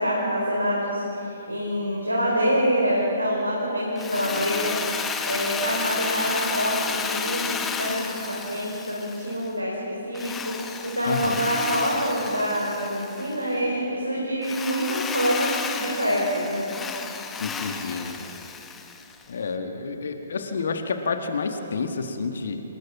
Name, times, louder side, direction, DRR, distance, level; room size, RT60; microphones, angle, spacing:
voice 1, 0.0-16.7, equal, 90° right, -4 dB, 4.7 m, -26 dB
Drill, 4.0-9.5 10.1-13.4 14.4-19.2, left 5 dB, 15° left, 1.2 m, -32 dB
voice 2, 11.0-11.5 17.4-18.2 19.3-22.6, left 4 dB, 60° left, 6 dB, 1.7 m, -29 dB
27.0 x 20.5 x 5.8 m, 3.0 s
figure-of-eight pair, 125°, 0 cm